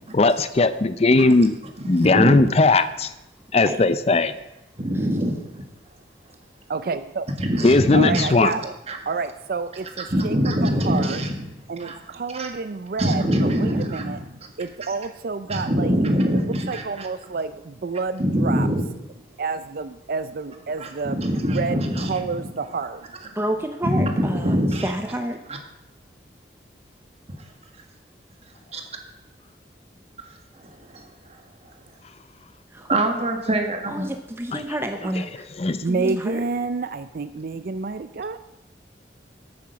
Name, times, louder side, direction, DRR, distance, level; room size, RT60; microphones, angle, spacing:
voice 1, 0.1-1.5 1.9-3.1 3.5-4.3 7.6-8.5 34.5-34.6 35.6-35.8, left 3 dB, 35° left, 13 dB, 0.5 m, -18 dB
voice 2, 1.9-2.5 4.8-5.7 7.4-8.3 8.9-9.0 10.1-11.4 11.8-11.9 12.3-12.5 13.0-14.2 15.5-17.1 18.2-18.8 20.8-22.2 23.8-24.9 28.7-28.8 30.6-31.4 32.9-34.1, equal, 35° right, 4 dB, 1.7 m, -24 dB
voice 3, 6.7-7.3 7.9-8.7 9.1-11.2 11.7-16.0 16.7-18.7 19.4-23.0 35.0-35.1 35.8-38.4, right 4 dB, 55° right, 12 dB, 0.5 m, -29 dB
voice 4, 23.3-25.4 32.7-32.9 33.9-35.5 35.8-36.4, right 1 dB, 15° right, 6 dB, 0.7 m, -29 dB
13.5 x 8.6 x 5.8 m, 0.92 s
head